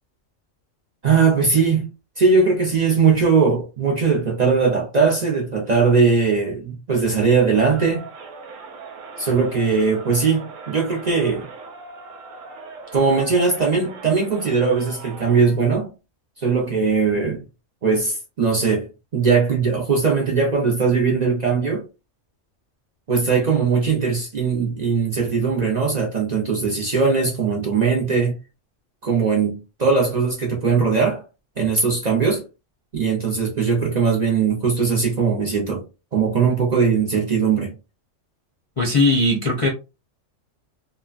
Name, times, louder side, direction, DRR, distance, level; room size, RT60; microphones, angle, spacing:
voice 1, 1.0-1.9 2.2-8.1 9.2-11.5 12.9-15.9 16.4-17.4 17.8-18.9 19.1-21.8 23.1-28.4 29.0-31.2 31.6-32.4 32.9-35.8 36.1-37.7, right 5 dB, 45° right, 0.6 m, -20 dB
Crowd, 7.5-15.6, right 4 dB, 90° right, 1.0 m, -40 dB
voice 2, 38.8-39.7, left 2 dB, 35° left, 0.6 m, -18 dB
3.0 x 2.2 x 2.4 m
omnidirectional pair, 1.3 m